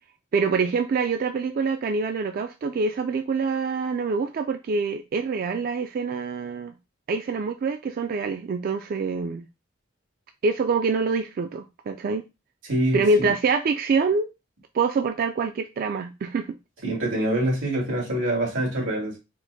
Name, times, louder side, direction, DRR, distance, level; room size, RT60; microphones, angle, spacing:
voice 1, 0.3-6.7 7.1-9.4 10.4-12.2 12.9-14.3 14.7-16.5, right 4 dB, 50° right, 0.3 m, -25 dB
voice 2, 12.7-13.3 16.8-19.2, right 1 dB, 90° right, 2.1 m, -25 dB
4.4 x 2.1 x 4.0 m
head